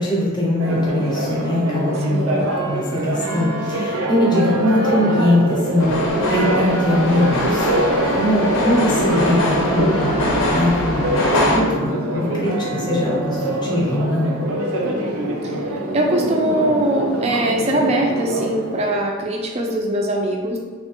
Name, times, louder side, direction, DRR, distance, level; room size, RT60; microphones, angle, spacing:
voice 1, 0.0-5.9 6.3-7.7 8.1-10.1 10.5-11.2 11.5-14.4, left 1 dB, 20° left, -4 dB, 0.6 m, -21 dB
Church bell, 0.6-18.9, right 1 dB, 85° right, 0.5 m, -24 dB
voice 2, 2.1-2.5 15.4-15.6 15.9-20.6, right 1 dB, 30° right, 1 dB, 0.3 m, -21 dB
sound 1, 5.8-11.6, left 2 dB, 70° left, 0.5 m, -22 dB
3.1 x 2.1 x 2.9 m, 1.5 s
head